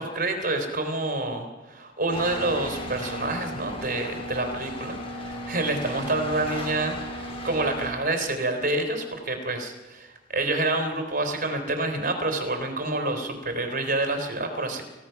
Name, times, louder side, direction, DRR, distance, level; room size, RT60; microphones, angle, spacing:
voice 1, 0.0-14.8, right 2 dB, 50° right, 5 dB, 3.8 m, -28 dB
sound 1, 2.1-7.9, equal, 30° left, 4.3 m, -35 dB
29.5 x 16.0 x 5.9 m, 1.2 s
head